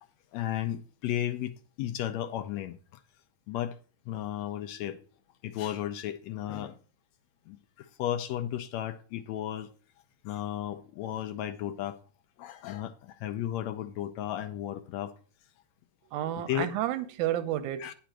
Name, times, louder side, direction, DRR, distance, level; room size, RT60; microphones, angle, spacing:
voice 1, 0.3-2.8 3.5-3.7 4.1-5.0 5.4-6.8 7.5-9.7 10.2-12.0 12.4-15.1 16.5-16.7 17.8-17.9, left 12 dB, 75° left, 1.6 m, -34 dB
voice 2, 16.1-17.9, right 12 dB, 75° right, 2.2 m, -31 dB
10.0 x 5.2 x 6.0 m
omnidirectional pair, 3.7 m